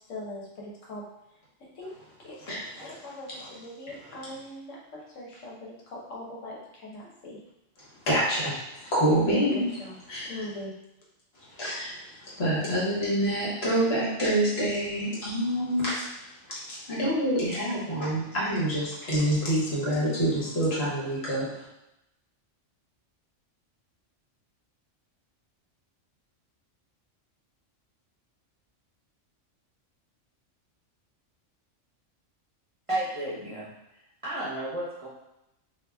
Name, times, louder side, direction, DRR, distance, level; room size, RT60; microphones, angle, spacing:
voice 1, 0.1-1.0 1.7-1.9 2.2-7.4 9.2-9.9 10.3-10.7, left 1 dB, 80° left, -4 dB, 1.2 m, -40 dB
voice 2, 2.5-2.9 8.1-9.7 10.1-10.4 11.5-16.1 16.5-21.6, right 1 dB, 55° left, -7 dB, 1.4 m, -27 dB
voice 3, 32.9-33.7 34.2-35.1, right 1 dB, 30° right, -9 dB, 0.8 m, -32 dB
2.8 x 2.5 x 3.4 m, 0.87 s
omnidirectional pair, 1.3 m